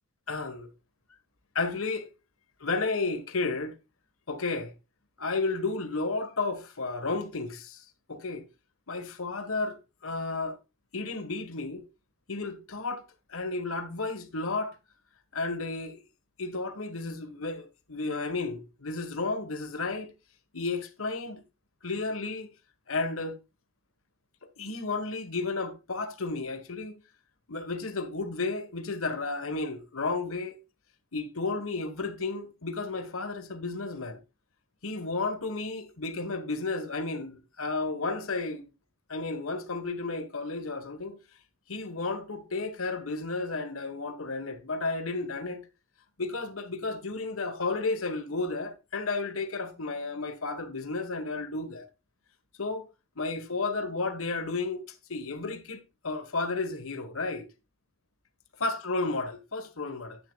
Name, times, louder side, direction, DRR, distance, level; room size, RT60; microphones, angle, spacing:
voice 1, 0.3-0.7 1.5-2.1 2.6-3.7 4.3-4.7 5.2-8.4 8.9-10.6 10.9-11.8 12.3-13.0 13.3-14.7 15.3-16.0 16.4-20.1 20.5-21.4 21.8-22.5 22.9-23.4 24.6-27.0 27.5-30.6 31.1-34.2 34.8-38.7 39.1-41.2 41.7-45.6 46.2-51.9 52.6-52.9 53.2-54.8 55.1-57.4 58.6-60.2, left 3 dB, 80° left, 1.4 m, -32 dB
9.8 x 9.6 x 2.3 m
head